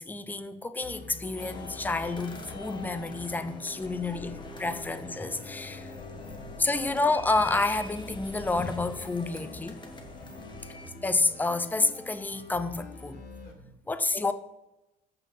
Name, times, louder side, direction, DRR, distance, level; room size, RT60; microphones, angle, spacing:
voice 1, 0.0-5.9 6.6-9.8 11.0-13.2 13.9-14.3, left 3 dB, 10° left, 0.6 m, -29 dB
sound 1, 0.8-13.5, left 3 dB, 80° left, 1.9 m, -46 dB
sound 2, 1.4-10.9, left 2 dB, 30° left, 1.3 m, -44 dB
voice 2, 5.4-6.7 10.5-10.7 13.4-13.8, right 7 dB, 65° right, 0.6 m, -60 dB
7.8 x 6.2 x 5.7 m
cardioid pair, 110°, 17 cm